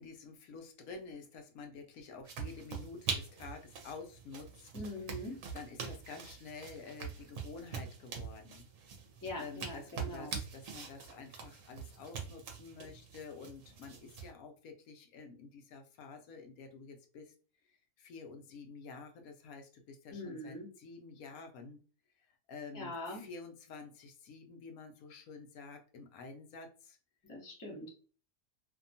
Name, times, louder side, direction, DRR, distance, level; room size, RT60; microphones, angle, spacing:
voice 1, 0.0-4.7 5.2-5.3 5.5-8.7 9.4-17.3 17.7-21.8 22.2-27.0, left 4 dB, 75° left, 4 dB, 1.0 m, -49 dB
sound 1, 2.2-14.3, right 6 dB, 65° right, 0.9 m, -44 dB
voice 2, 4.7-5.4 9.2-10.4 20.1-20.7 22.7-23.3 27.2-27.9, left 1 dB, 20° left, -1 dB, 0.5 m, -43 dB
2.8 x 2.2 x 2.6 m, 0.38 s
omnidirectional pair, 1.6 m